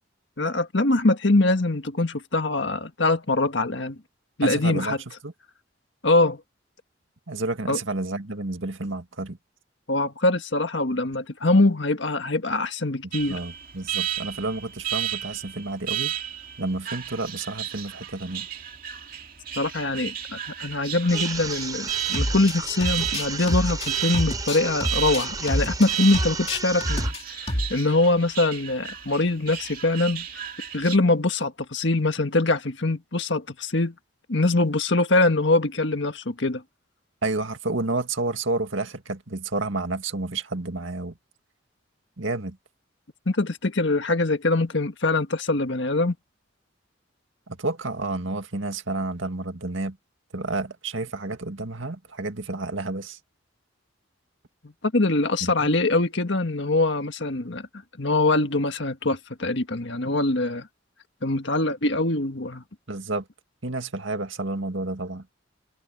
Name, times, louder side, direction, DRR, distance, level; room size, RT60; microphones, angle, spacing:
voice 1, 0.4-4.0 4.4-5.0 6.0-6.4 7.7-7.8 9.9-13.4 19.6-30.2 30.7-33.9 34.3-36.6 43.2-46.1 54.6-57.7 58.0-60.7 61.2-62.6, left 2 dB, 60° left, 1.7 m, -23 dB
voice 2, 4.4-5.0 5.2-5.3 7.3-9.4 13.3-16.1 16.6-18.5 37.2-41.1 42.2-42.6 47.5-50.0 50.3-53.2 55.4-55.7 62.9-63.2 63.6-65.2, right 2 dB, 70° right, 2.1 m, -30 dB
Alarm, 13.1-31.0, right 12 dB, 45° right, 2.6 m, -33 dB
sound 1, 21.1-27.1, right 4 dB, 20° right, 4.4 m, -34 dB
sound 2, 22.1-22.5 22.8-25.9 26.1-27.2 27.5-27.7, left 1 dB, 30° left, 2.6 m, -28 dB
head